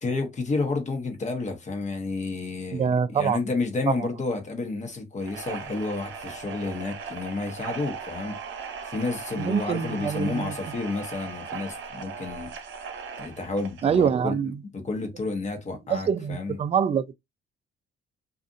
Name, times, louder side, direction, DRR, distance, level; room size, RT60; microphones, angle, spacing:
voice 1, 0.0-8.4 8.8-12.5 13.2-14.4 14.7-16.6, left 3 dB, 35° left, 1.0 m, -30 dB
voice 2, 2.7-3.4 9.4-10.5 13.8-14.5 15.9-17.1, right 7 dB, 30° right, 0.3 m, -25 dB
sound 1, 5.2-14.1, right 6 dB, 75° right, 0.7 m, -38 dB
2.5 x 2.4 x 2.5 m
cardioid pair, 90°, 20 cm